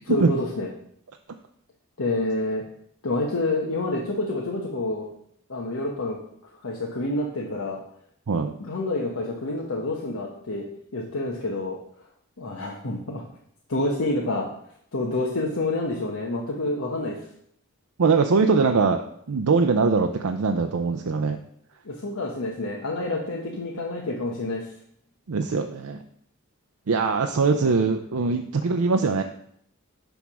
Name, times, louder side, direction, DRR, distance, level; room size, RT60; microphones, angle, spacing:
voice 1, 0.0-0.7 2.0-2.6 3.0-5.1 5.5-6.2 6.6-7.8 8.6-10.7 10.9-11.8 12.4-13.2 13.7-14.5 14.9-17.2 21.8-24.7 27.6-27.7, left 2 dB, 75° left, -1 dB, 1.1 m, -28 dB
voice 2, 18.0-21.4 25.3-26.0 26.9-29.2, right 4 dB, 80° right, 5 dB, 0.5 m, -22 dB
10.0 x 3.5 x 6.1 m, 0.68 s
head